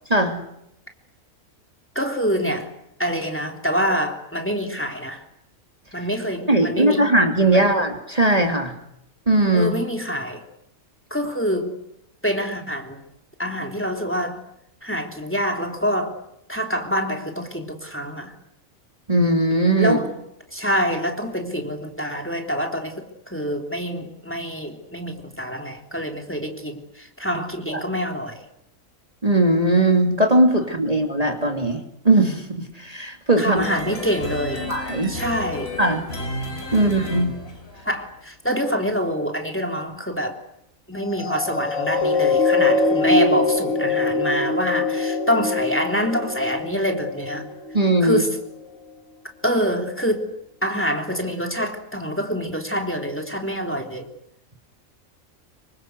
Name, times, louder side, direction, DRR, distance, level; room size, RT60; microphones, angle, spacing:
voice 1, 0.1-0.4 6.5-8.7 9.3-9.7 19.1-20.0 27.7-27.8 29.2-33.6 34.7-35.1 35.8-36.0 36.7-37.3 47.7-48.2, right 1 dB, 25° right, 3 dB, 2.9 m, -19 dB
voice 2, 2.0-2.7 3.0-5.2 5.9-7.0 7.5-7.7 9.5-10.4 11.1-11.7 12.2-13.0 13.4-14.4 14.8-16.2 16.5-18.3 19.8-20.1 20.5-28.4 33.4-34.7 35.1-35.7 36.8-37.0 37.9-40.4 40.9-47.5 48.0-48.4 49.4-50.3 50.6-54.1, equal, 10° left, 3 dB, 3.4 m, -26 dB
sound 1, 33.5-38.2, left 1 dB, 45° left, 5.0 m, -32 dB
sound 2, 41.1-47.8 48.4-48.5, left 3 dB, 75° left, 2.9 m, -23 dB
26.5 x 25.0 x 8.0 m, 0.80 s
omnidirectional pair, 1.4 m